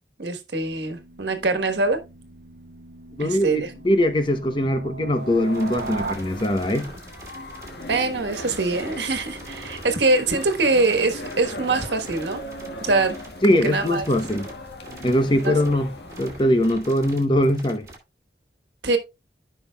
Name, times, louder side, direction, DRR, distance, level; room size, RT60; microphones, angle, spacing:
voice 1, 0.2-2.0 3.2-3.7 7.9-12.4 12.8-13.2 13.5-14.0 15.4-15.5 18.8-19.0, right 3 dB, 85° right, 1.3 m, -23 dB
sound 1, 0.6-6.2, right 3 dB, 55° right, 0.6 m, -38 dB
voice 2, 3.2-6.9 13.4-14.5 15.0-15.9 16.2-17.9, left 1 dB, 25° left, 0.8 m, -21 dB
sound 2, 5.2-16.8, left 1 dB, 75° left, 1.6 m, -38 dB
sound 3, 5.5-18.0, right 2 dB, 15° right, 2.5 m, -44 dB
14.5 x 5.5 x 2.3 m
head